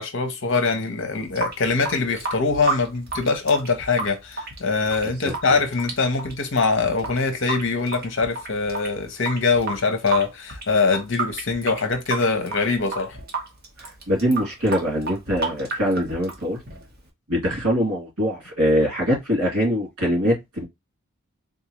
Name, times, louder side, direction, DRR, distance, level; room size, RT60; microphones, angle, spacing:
voice 1, 0.0-13.2, left 4 dB, 55° left, 0.8 m, -23 dB
Water tap faucet / Sink (filling or washing) / Drip, 1.1-17.1, right 3 dB, 45° right, 1.0 m, -32 dB
voice 2, 13.8-16.6 17.3-20.6, equal, 80° right, 2.3 m, -23 dB
3.7 x 2.6 x 2.9 m
head